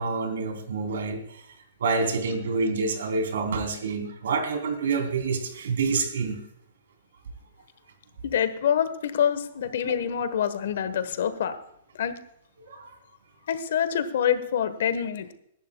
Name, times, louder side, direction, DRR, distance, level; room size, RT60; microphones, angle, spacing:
voice 1, 0.0-1.4 1.8-6.4 9.8-9.9 10.3-10.4 12.6-12.9, right 4 dB, 75° right, 5 dB, 3.3 m, -27 dB
voice 2, 8.2-11.6 12.0-12.1 13.5-15.3, left 8 dB, 60° left, 12 dB, 1.3 m, -26 dB
24.0 x 11.5 x 2.3 m, 0.72 s
hypercardioid pair, 175°, 0 cm